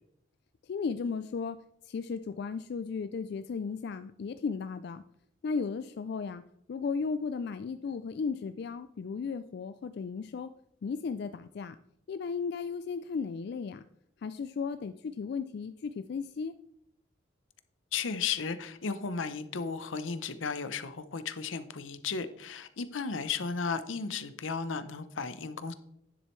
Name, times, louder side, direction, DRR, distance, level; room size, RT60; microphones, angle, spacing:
voice 1, 0.7-1.6 1.9-5.0 5.4-6.4 6.7-10.5 10.8-11.8 12.1-13.8 14.2-16.5, left 5 dB, 60° left, 11 dB, 0.3 m, -35 dB
voice 2, 17.9-25.7, left 5 dB, 85° left, 12 dB, 0.7 m, -34 dB
10.0 x 7.3 x 3.2 m, 0.75 s
head